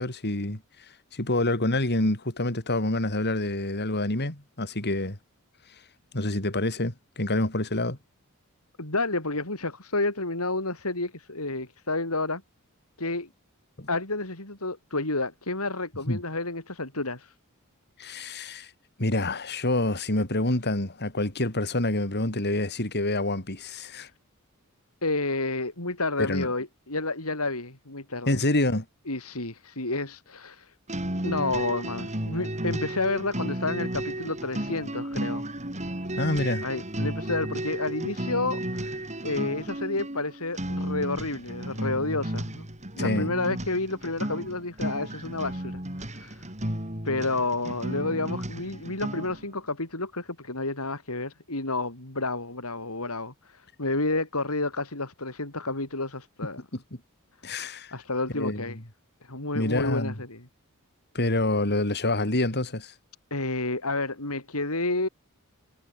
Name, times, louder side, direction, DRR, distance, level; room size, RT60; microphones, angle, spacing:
voice 1, 0.0-5.2 6.1-8.0 13.8-13.9 16.1-16.2 18.0-18.7 19.0-24.1 26.2-26.5 28.3-28.8 36.2-36.7 43.0-43.3 56.7-56.8 57.4-57.9 58.3-58.8 59.5-60.2 61.1-62.9, left 2 dB, 50° left, 4.3 m, -27 dB
voice 2, 8.8-12.4 13.0-13.3 13.9-17.3 25.0-28.4 29.1-30.7 31.2-35.4 36.6-42.7 42.9-45.8 46.1-46.4 47.0-56.6 57.9-58.8 59.2-60.4 63.3-65.1, left 2 dB, 80° left, 6.0 m, -30 dB
sound 1, 30.9-49.4, right 1 dB, 30° right, 7.9 m, -33 dB
head